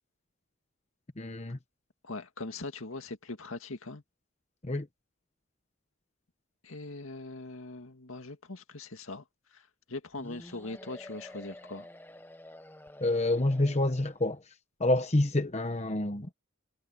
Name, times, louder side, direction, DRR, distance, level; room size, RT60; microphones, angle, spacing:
voice 1, 1.2-1.6 4.6-4.9 13.0-14.4 14.8-16.3, left 1 dB, 30° left, 1.0 m, -27 dB
voice 2, 2.0-4.0 6.6-9.2 9.5-11.9, left 2 dB, 75° left, 2.1 m, -41 dB
sound 1, 10.2-14.4, left 1 dB, 10° left, 1.4 m, -49 dB
head